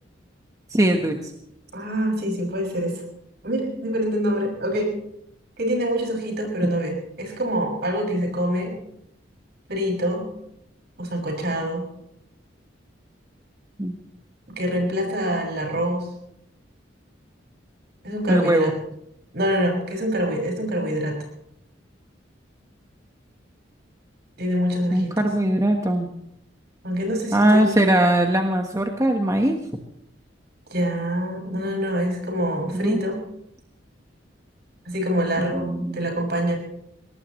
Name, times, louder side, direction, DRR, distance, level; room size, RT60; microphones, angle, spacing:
voice 1, 0.7-1.3 13.8-13.9 18.3-18.7 24.9-26.1 27.3-29.6 32.7-33.0 35.4-36.1, right 1 dB, 20° right, 3 dB, 1.3 m, -20 dB
voice 2, 1.7-2.9 3.4-4.9 5.6-8.7 9.7-10.3 11.0-11.9 14.5-16.1 18.0-18.7 19.3-21.1 24.4-25.1 26.8-27.8 30.7-33.2 34.8-35.7 35.9-36.6, equal, 60° right, 2 dB, 6.5 m, -25 dB
22.5 x 18.5 x 3.2 m, 0.76 s
head